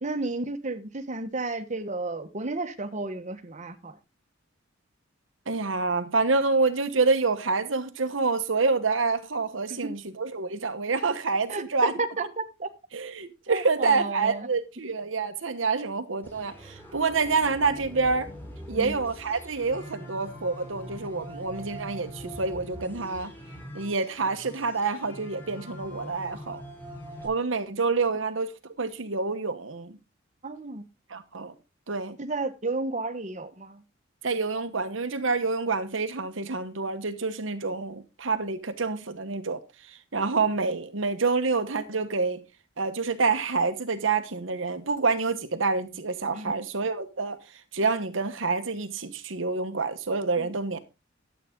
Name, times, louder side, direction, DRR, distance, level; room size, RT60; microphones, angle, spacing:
voice 1, 0.0-4.0 9.7-9.8 11.5-11.6 12.2-12.7 13.5-14.5 18.8-18.9 30.4-30.8 32.2-33.8 46.3-46.5 50.4-50.5, right 3 dB, 40° right, 1.3 m, -32 dB
voice 2, 5.5-11.9 12.2-12.3 12.9-18.3 18.7-23.3 23.7-26.6 27.2-28.5 28.8-29.9 31.1-31.5 31.9-32.2 34.2-39.6 39.9-42.4 42.8-47.4 47.7-50.8, right 4 dB, 75° right, 1.2 m, -27 dB
sound 1, 16.2-27.3, equal, 10° left, 4.5 m, -43 dB
12.0 x 8.4 x 3.7 m
head